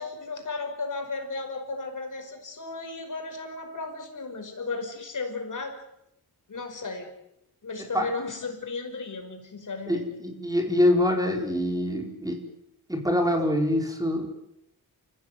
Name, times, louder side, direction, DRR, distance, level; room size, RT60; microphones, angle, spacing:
voice 1, 0.0-5.8 6.5-7.1 7.6-10.0, left 3 dB, 50° left, 4 dB, 5.5 m, -35 dB
voice 2, 9.9-12.4 12.9-14.3, left 1 dB, 10° right, 3 dB, 4.5 m, -25 dB
29.0 x 15.5 x 9.4 m, 0.82 s
wide cardioid pair, 95°, 38 cm